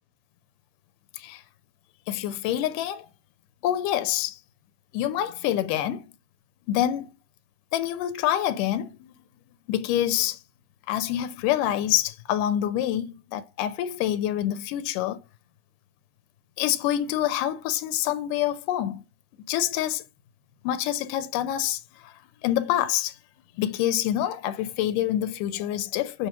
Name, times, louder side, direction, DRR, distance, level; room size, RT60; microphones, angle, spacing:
voice 1, 2.1-3.1 3.6-4.4 4.9-6.0 6.7-7.1 7.7-9.1 9.7-10.4 10.9-15.2 16.6-19.0 19.5-20.1 20.6-22.1 22.4-23.2 23.6-26.3, left 12 dB, 85° left, 2.1 m, -26 dB
6.6 x 3.0 x 5.7 m
omnidirectional pair, 3.7 m